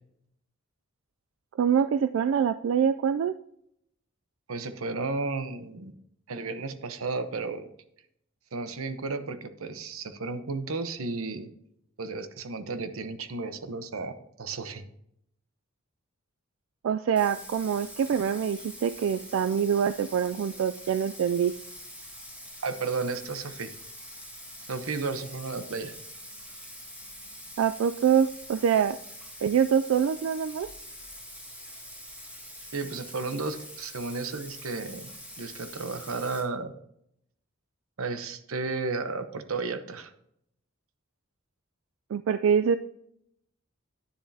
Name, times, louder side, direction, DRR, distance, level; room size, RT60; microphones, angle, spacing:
voice 1, 1.6-3.3 16.8-21.5 27.6-29.0 29.4-30.7 42.1-42.8, right 7 dB, 65° right, 11 dB, 0.3 m, -25 dB
voice 2, 4.5-6.0 6.3-7.7 8.5-11.5 12.0-14.9 22.6-23.7 24.7-25.9 32.7-35.1 35.4-36.8 38.0-40.1, right 3 dB, 90° right, 10 dB, 0.9 m, -33 dB
Bathtub (filling or washing), 17.1-36.4, equal, 5° right, 2.1 m, -45 dB
10.5 x 9.9 x 2.8 m, 0.74 s
head